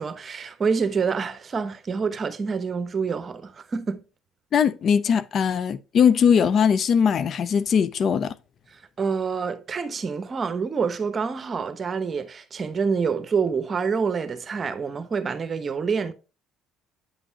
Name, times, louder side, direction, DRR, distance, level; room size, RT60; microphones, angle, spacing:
voice 1, 0.0-4.0 9.0-16.1, right 5 dB, 35° right, 0.9 m, -27 dB
voice 2, 4.5-8.4, left 7 dB, 50° left, 0.4 m, -20 dB
8.9 x 5.2 x 2.8 m
supercardioid pair, 85°, 0 cm